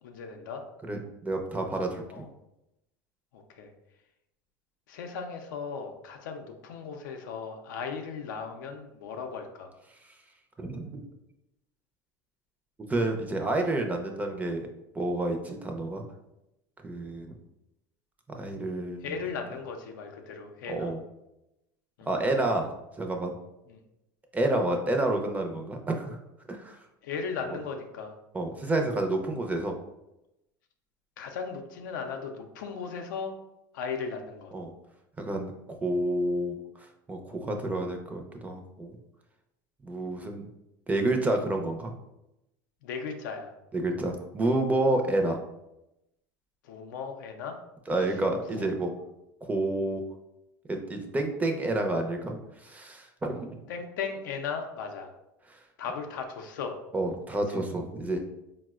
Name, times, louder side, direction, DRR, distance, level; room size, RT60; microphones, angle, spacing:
voice 1, 0.0-0.6 2.1-2.3 3.3-3.7 4.9-9.7 19.0-20.9 22.0-22.1 23.7-23.8 27.0-28.2 31.2-33.4 33.7-34.5 42.8-43.5 45.2-45.3 46.6-47.6 48.5-48.7 53.7-55.1 55.8-56.8 57.5-57.6, left 5 dB, 80° left, 5 dB, 0.4 m, -37 dB
voice 2, 0.8-2.2 10.6-11.0 12.9-14.6 14.9-16.0 16.8-17.3 18.4-19.1 20.7-21.0 22.1-23.3 24.3-26.2 26.5-26.8 28.3-29.7 34.5-34.7 35.2-36.6 37.1-39.0 39.8-40.5 40.9-41.9 43.7-45.4 47.9-48.9 49.4-50.1 50.7-53.6 56.9-58.2, right 2 dB, 15° right, 3 dB, 0.5 m, -29 dB
4.1 x 2.0 x 2.3 m, 0.89 s
supercardioid pair, 100°, 10 cm